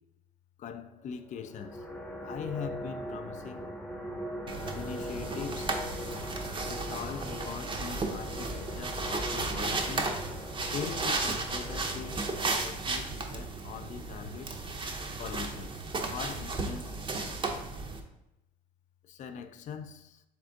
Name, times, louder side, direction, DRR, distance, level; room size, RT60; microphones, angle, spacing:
voice 1, 0.6-1.9 2.2-3.6 4.8-6.1 6.7-10.2 10.7-14.5 15.2-15.8 16.1-17.0 17.2-17.3 19.0-20.2, left 7 dB, 50° left, 0.4 m, -42 dB
sound 1, 1.2-12.6, equal, 5° left, 0.7 m, -41 dB
sound 2, 4.5-18.0, right 3 dB, 30° right, 0.7 m, -34 dB
3.6 x 3.4 x 3.8 m
supercardioid pair, 80°, 16 cm